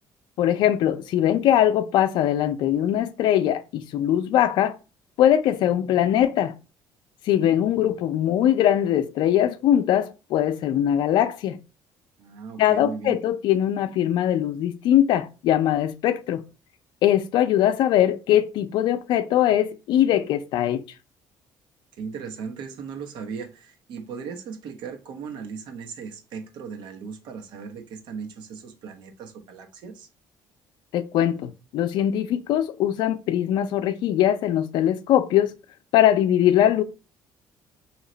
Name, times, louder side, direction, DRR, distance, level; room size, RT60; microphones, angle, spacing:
voice 1, 0.4-4.8 5.2-6.5 7.3-11.6 12.6-16.4 17.0-20.8 30.9-35.5 35.9-36.8, left 11 dB, 75° left, 0.4 m, -21 dB
voice 2, 12.2-13.2 22.0-30.1, right 6 dB, 75° right, 0.9 m, -37 dB
3.1 x 2.9 x 3.8 m
cardioid pair, 95°, 8 cm